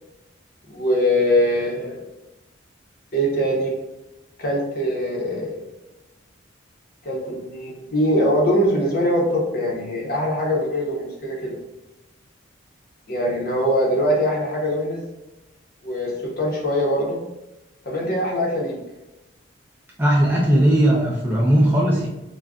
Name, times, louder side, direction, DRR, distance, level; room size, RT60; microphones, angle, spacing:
voice 1, 0.7-2.0 3.1-3.7 4.4-5.7 7.0-11.6 13.1-15.1 15.8-17.2 17.8-18.8, equal, 50° left, -3 dB, 0.7 m, -22 dB
voice 2, 20.0-22.1, right 1 dB, 10° right, -4 dB, 0.3 m, -17 dB
2.4 x 2.2 x 3.5 m, 0.98 s
head